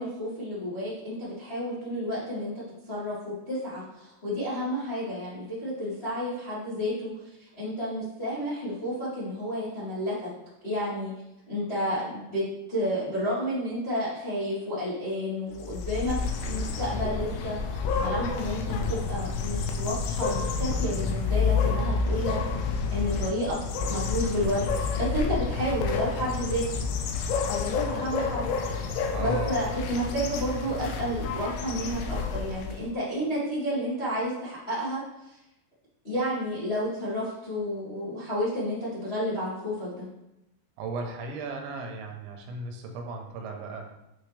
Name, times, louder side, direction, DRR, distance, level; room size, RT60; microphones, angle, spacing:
voice 1, 0.0-7.1 7.4-10.3 10.6-11.1 11.5-16.2 16.4-23.6 23.9-26.6 27.9-28.5 28.8-35.0 35.3-35.4 36.0-40.1, equal, 35° left, -11 dB, 0.9 m, -31 dB
sound 1, 15.6-32.9, left 4 dB, 90° left, 3.0 m, -29 dB
voice 2, 29.1-29.6 40.8-43.9, right 3 dB, 85° right, 2 dB, 3.2 m, -36 dB
8.9 x 3.5 x 3.3 m, 0.88 s
omnidirectional pair, 5.1 m